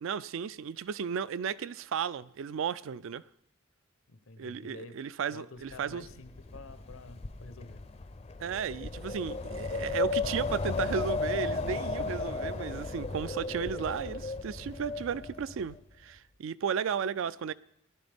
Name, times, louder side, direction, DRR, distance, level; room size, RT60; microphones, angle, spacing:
voice 1, 0.0-3.2 4.4-6.1 8.4-17.5, right 7 dB, 70° right, 0.3 m, -34 dB
voice 2, 4.1-5.0 5.3-7.9, left 2 dB, 90° left, 0.8 m, -49 dB
Wind, 5.7-15.8, left 3 dB, 30° left, 0.4 m, -35 dB
17.5 x 10.5 x 3.5 m
head